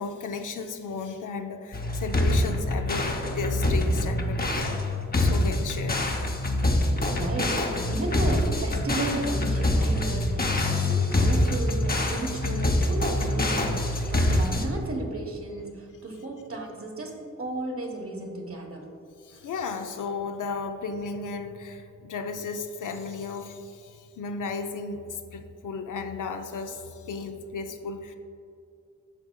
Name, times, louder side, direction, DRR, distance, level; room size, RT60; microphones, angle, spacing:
voice 1, 0.0-4.8 5.2-6.0 19.2-28.1, left 4 dB, 80° left, 6 dB, 0.6 m, -34 dB
sound 1, 1.7-14.7, left 1 dB, 30° left, 0.7 m, -25 dB
voice 2, 7.0-18.9 19.3-19.5, right 2 dB, 45° right, 2 dB, 1.2 m, -34 dB
8.9 x 6.1 x 2.3 m, 2.6 s
cardioid pair, 60°, 31 cm